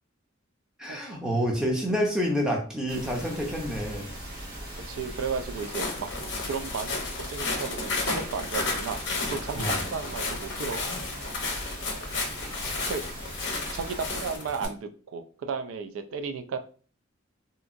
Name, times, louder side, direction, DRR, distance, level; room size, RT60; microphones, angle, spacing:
voice 1, 0.8-4.1 9.5-9.8 12.6-12.8, equal, 5° right, -2 dB, 0.5 m, -28 dB
sound 1, 2.9-14.4, right 1 dB, 45° right, 1.1 m, -40 dB
voice 2, 4.9-6.1 6.5-9.0 9.3-10.8 12.9-13.0 13.7-16.6, right 5 dB, 80° right, 8 dB, 0.3 m, -34 dB
Walk footsteps, 5.6-14.7, left 3 dB, 60° left, 0.7 m, -33 dB
2.8 x 2.5 x 2.4 m, 0.41 s
head